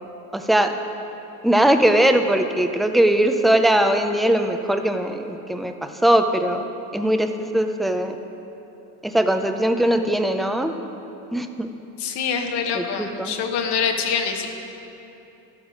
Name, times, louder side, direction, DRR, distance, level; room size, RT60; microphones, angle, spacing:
voice 1, 0.3-0.7 1.4-5.7 6.0-6.6 6.9-8.2 9.0-10.7 11.3-11.7 12.7-13.3, right 1 dB, ahead, 6 dB, 0.4 m, -20 dB
voice 2, 12.0-14.5, left 6 dB, 60° left, 4 dB, 1.3 m, -25 dB
12.5 x 8.1 x 4.9 m, 3.0 s
supercardioid pair, 105°, 46 cm